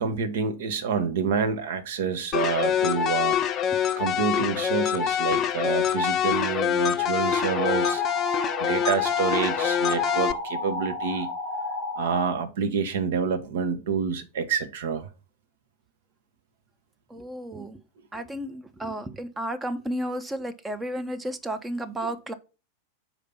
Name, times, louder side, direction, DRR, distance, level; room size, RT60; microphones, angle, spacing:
voice 1, 0.0-3.4 4.0-8.0 8.6-11.3 12.0-15.1 22.0-22.1, right 6 dB, 55° right, 0.8 m, -28 dB
sound 1, 2.3-10.3, left 9 dB, 30° left, 0.6 m, -25 dB
sound 2, 7.2-12.2, left 2 dB, 80° right, 1.9 m, -32 dB
voice 2, 17.1-17.8 18.1-22.3, right 1 dB, 10° right, 0.6 m, -33 dB
5.0 x 4.3 x 5.6 m
figure-of-eight pair, 90°, 0 cm